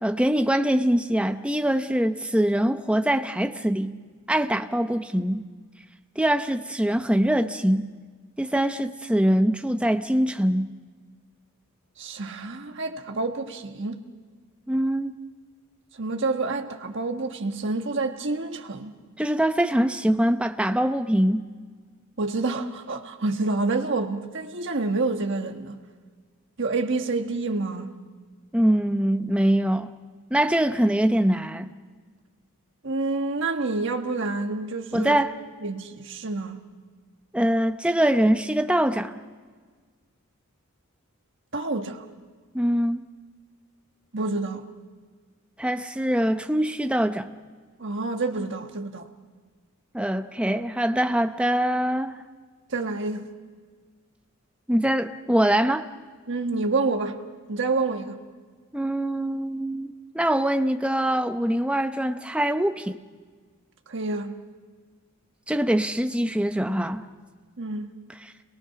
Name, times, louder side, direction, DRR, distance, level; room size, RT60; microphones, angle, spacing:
voice 1, 0.0-4.0 4.3-5.5 6.2-7.9 8.4-10.7 14.7-15.1 19.2-21.5 28.5-29.9 30.3-31.7 34.9-35.3 37.3-39.1 42.5-43.0 45.6-47.3 49.9-52.1 54.7-55.8 58.7-63.0 65.5-67.0, right 1 dB, 5° right, 0.7 m, -23 dB
voice 2, 12.0-14.0 16.0-19.0 22.2-25.8 26.6-27.9 32.8-35.2 35.6-36.6 41.5-42.0 44.1-44.6 47.8-49.1 52.7-53.3 56.3-57.2 57.5-58.2 63.9-64.4 67.6-68.0, right 3 dB, 55° right, 1.5 m, -28 dB
29.0 x 22.5 x 5.8 m
head